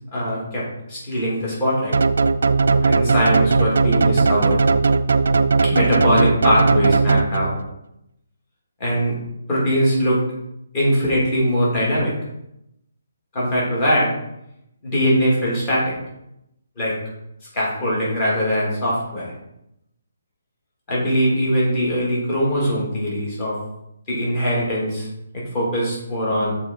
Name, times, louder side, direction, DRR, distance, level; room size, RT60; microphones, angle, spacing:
voice 1, 0.1-0.6 0.9-2.0 2.6-4.6 5.7-7.5 8.8-9.2 9.5-10.2 10.7-12.1 13.3-14.1 14.8-15.8 16.8-16.9 17.5-19.3 20.9-23.5 24.1-25.1 25.5-26.5, equal, 25° left, -6 dB, 2.5 m, -21 dB
sound 1, 1.9-7.7, right 4 dB, 75° right, 0.4 m, -18 dB
6.7 x 3.6 x 4.4 m, 0.83 s
hypercardioid pair, 165°, 0 cm